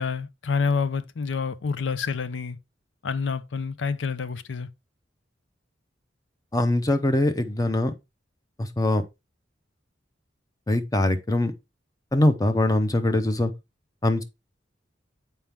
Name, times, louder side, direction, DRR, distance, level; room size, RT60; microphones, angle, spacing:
voice 1, 0.0-2.6 3.0-4.7, left 5 dB, 85° left, 0.6 m, -28 dB
voice 2, 6.5-7.9 8.6-9.0 10.7-11.5 12.1-13.5 14.0-14.2, left 1 dB, 20° left, 0.7 m, -22 dB
7.4 x 4.5 x 3.4 m
head